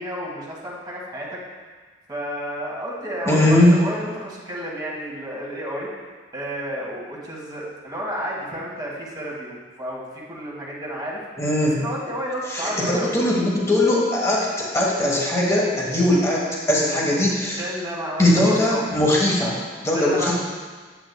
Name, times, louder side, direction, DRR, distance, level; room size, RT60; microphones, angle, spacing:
voice 1, 0.0-1.4 2.1-5.9 6.3-11.2 11.6-13.1 17.6-18.8 19.9-20.3, equal, 20° right, -5 dB, 1.6 m, -31 dB
voice 2, 3.3-3.7 11.4-11.8 12.5-17.6 18.2-20.3, left 1 dB, 15° left, -5 dB, 1.3 m, -20 dB
8.2 x 7.5 x 2.3 m, 1.5 s
head